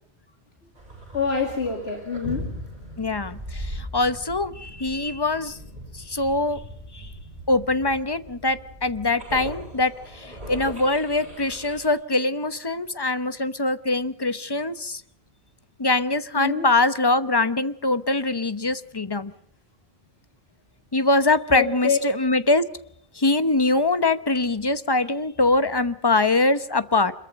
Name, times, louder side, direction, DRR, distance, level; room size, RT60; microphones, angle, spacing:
sound 1, 0.8-11.9, equal, 45° right, 7.8 m, -39 dB
voice 1, 1.1-2.6 16.3-16.7 21.5-22.0, left 5 dB, 70° left, 3 dB, 2.7 m, -25 dB
voice 2, 3.0-5.6 5.9-6.6 6.9-7.1 7.5-15.0 15.8-19.3 20.9-22.6 23.2-27.1, left 2 dB, 25° left, 12 dB, 0.9 m, -23 dB
26.5 x 22.0 x 5.3 m, 0.69 s
omnidirectional pair, 1.1 m